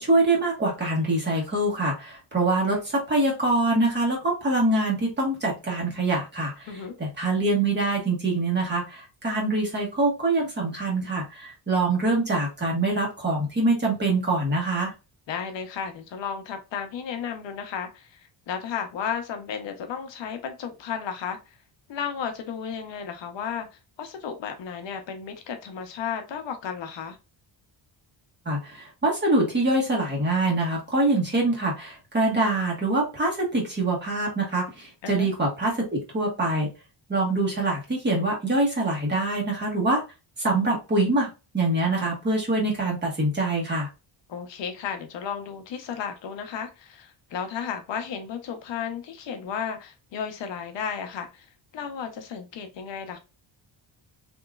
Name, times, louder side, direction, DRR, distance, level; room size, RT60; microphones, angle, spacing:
voice 1, 0.0-6.7 7.0-14.9 28.4-36.7 37.1-40.0 40.4-41.3 41.5-43.9, right 2 dB, 25° right, 1.3 m, -24 dB
voice 2, 6.7-7.0 15.3-21.6 21.9-27.2 35.0-35.3 44.3-51.5 51.7-53.2, left 7 dB, 75° left, 0.8 m, -33 dB
3.6 x 2.9 x 2.3 m
wide cardioid pair, 170°, 45 cm